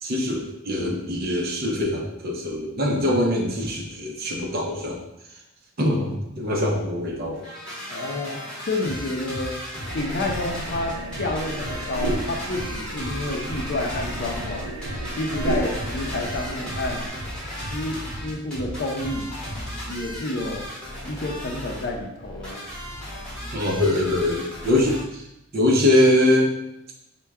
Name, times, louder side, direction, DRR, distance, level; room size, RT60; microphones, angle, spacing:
voice 1, 0.0-5.0 5.8-7.4 23.5-25.2 25.5-26.5, left 1 dB, 45° right, -1 dB, 0.7 m, -23 dB
sound 1, 7.3-25.0, equal, 5° left, 1.2 m, -34 dB
voice 2, 7.9-8.4 8.7-9.5 9.9-14.7 15.1-17.0 17.7-19.3 19.9-20.7 21.0-22.6, left 2 dB, 50° left, 1 dB, 0.6 m, -29 dB
sound 2, 9.9-17.1, right 2 dB, 80° right, 0.5 m, -33 dB
4.4 x 2.2 x 3.5 m, 0.87 s
head